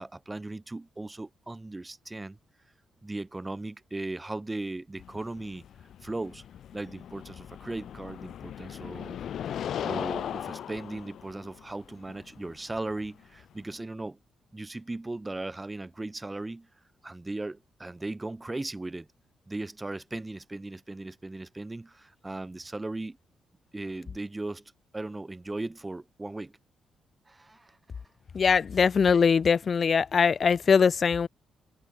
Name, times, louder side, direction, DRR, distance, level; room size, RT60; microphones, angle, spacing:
voice 1, 0.0-2.4 3.0-5.6 6.0-6.4 6.7-9.2 9.8-14.2 14.5-16.7 17.0-19.1 19.5-23.2 23.7-26.6 27.3-27.8, right 2 dB, 15° right, 7.1 m, -37 dB
sound 1, 5.0-13.8, left 9 dB, 60° left, 1.9 m, -38 dB
voice 2, 28.4-31.3, left 6 dB, 35° left, 0.4 m, -22 dB
open air
cardioid pair, 155°, 0 cm